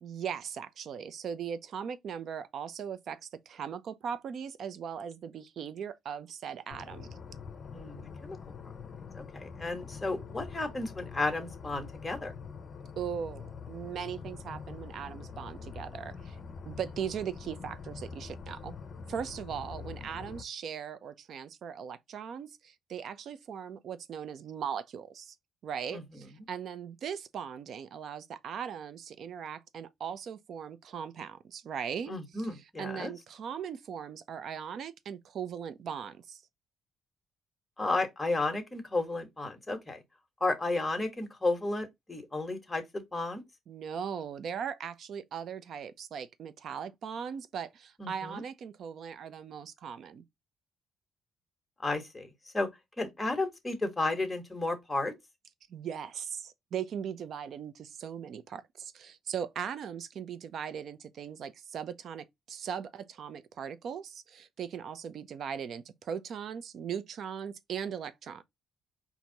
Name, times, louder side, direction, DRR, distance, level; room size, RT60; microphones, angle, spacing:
voice 1, 0.0-7.1 13.0-16.4 16.7-18.7 19.1-25.3 25.6-36.4 43.7-50.2 55.7-68.4, right 7 dB, 65° right, 0.6 m, -39 dB
sound 1, 6.7-20.4, left 5 dB, 45° left, 0.8 m, -45 dB
voice 2, 7.7-8.4 9.1-12.3 25.9-26.0 32.1-33.1 37.8-40.0 40.4-43.4 48.0-48.4 51.8-52.7 53.0-55.1, left 2 dB, 15° left, 1.4 m, -33 dB
4.6 x 2.7 x 4.0 m
cardioid pair, 90°, 0 cm